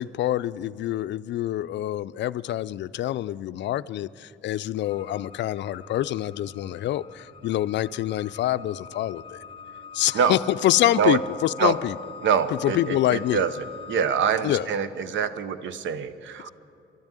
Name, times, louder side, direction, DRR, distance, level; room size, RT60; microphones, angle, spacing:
voice 1, 0.0-9.4 9.9-12.0 12.5-13.4 14.4-14.7, left 13 dB, 65° left, 17 dB, 0.4 m, -26 dB
sound 1, 4.8-14.2, left 6 dB, 25° left, 1.0 m, -43 dB
voice 2, 12.2-13.5 13.9-16.5, right 7 dB, 70° right, 13 dB, 0.8 m, -25 dB
12.5 x 10.5 x 9.0 m, 2.7 s
cardioid pair, 90°, 20 cm